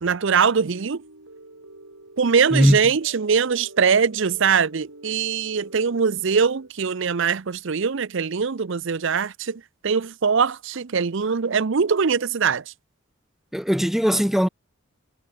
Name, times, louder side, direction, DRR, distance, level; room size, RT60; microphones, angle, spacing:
voice 1, 0.0-1.0 2.2-12.6, right 6 dB, 55° right, 0.6 m, -22 dB
sound 1, 0.6-6.7, right 2 dB, 80° right, 4.7 m, -46 dB
voice 2, 13.5-14.5, equal, ahead, 0.7 m, -19 dB
head